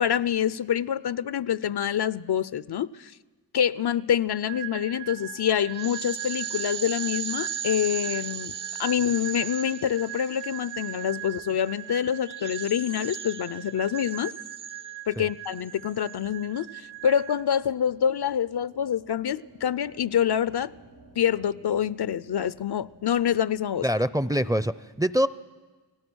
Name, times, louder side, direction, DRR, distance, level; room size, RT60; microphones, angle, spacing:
voice 1, 0.0-3.1 3.5-8.5 8.8-14.3 15.1-20.7 21.2-23.8, left 9 dB, 65° left, 18 dB, 0.7 m, -26 dB
sound 1, 4.5-17.4, right 11 dB, 45° right, 1.1 m, -36 dB
sound 2, 12.7-24.5, right 1 dB, 85° right, 4.9 m, -57 dB
voice 2, 23.8-25.3, equal, 10° right, 15 dB, 0.6 m, -24 dB
30.0 x 18.0 x 6.3 m, 1.3 s
cardioid pair, 60°, 43 cm